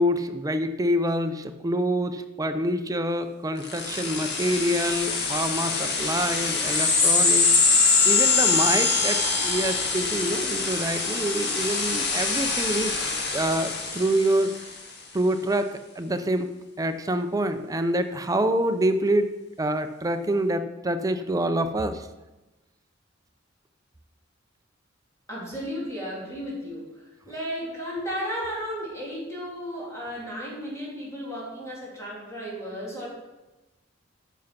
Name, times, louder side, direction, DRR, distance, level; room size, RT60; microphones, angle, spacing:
voice 1, 0.0-7.5 8.0-12.9 13.3-14.6 15.1-22.1, right 1 dB, 20° right, 9 dB, 0.5 m, -26 dB
sound 1, 3.6-14.7, left 4 dB, 60° left, 1.6 m, -24 dB
voice 2, 25.3-33.1, equal, 15° left, -5 dB, 3.2 m, -34 dB
10.0 x 5.8 x 5.8 m, 1.1 s
head